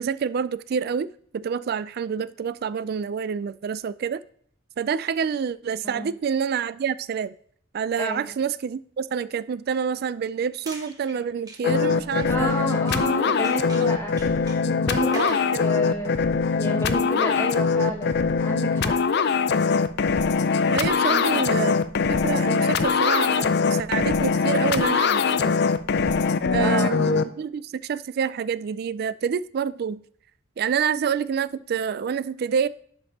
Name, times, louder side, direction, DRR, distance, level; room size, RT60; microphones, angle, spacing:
voice 1, 0.0-4.2 4.8-7.3 7.7-12.5 13.3-13.4 13.8-13.9 15.1-15.4 20.7-21.8 22.1-25.6 26.5-30.0 30.6-32.7, right 7 dB, 55° right, 0.3 m, -27 dB
sound 1, 10.4-13.2 13.4-15.5, right 2 dB, 20° right, 1.1 m, -44 dB
sound 2, 11.6-27.2, left 5 dB, 60° left, 0.4 m, -22 dB
voice 2, 12.2-14.2 14.7-16.2 16.6-19.0 21.0-21.4 26.6-27.0, equal, 15° left, 1.6 m, -30 dB
11.0 x 5.2 x 2.8 m
head